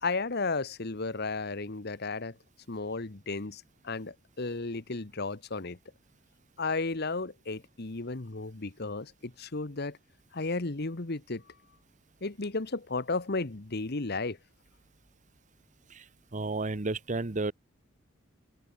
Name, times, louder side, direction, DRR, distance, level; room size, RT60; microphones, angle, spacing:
voice 1, 0.0-2.4 2.7-5.8 6.6-10.0 10.3-11.4 12.2-14.4, left 3 dB, 55° left, 1.2 m, -34 dB
voice 2, 15.9-17.5, right 2 dB, 40° right, 1.0 m, -32 dB
open air
head